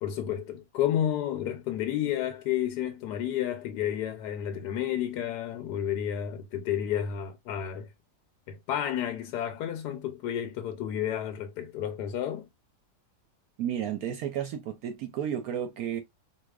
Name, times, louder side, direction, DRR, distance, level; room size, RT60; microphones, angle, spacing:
voice 1, 0.0-7.9 8.5-12.5, left 10 dB, 80° left, 1.1 m, -31 dB
voice 2, 13.6-16.0, right 9 dB, 70° right, 1.0 m, -32 dB
3.9 x 2.8 x 2.2 m
omnidirectional pair, 1.8 m